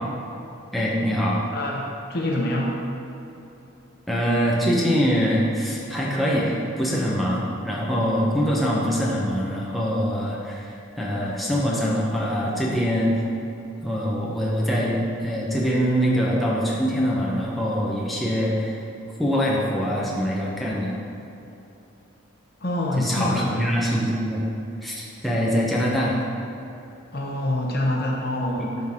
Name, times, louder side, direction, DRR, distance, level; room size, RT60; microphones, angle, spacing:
voice 1, 0.7-1.4 4.1-13.3 13.8-18.8 19.2-21.0 23.0-24.4 24.8-26.2 28.6-28.7, equal, ahead, -6 dB, 0.9 m, -24 dB
voice 2, 1.5-2.8 22.6-23.7 27.1-28.7, left 1 dB, 50° left, -2 dB, 1.0 m, -26 dB
12.0 x 4.0 x 3.7 m, 2.9 s
head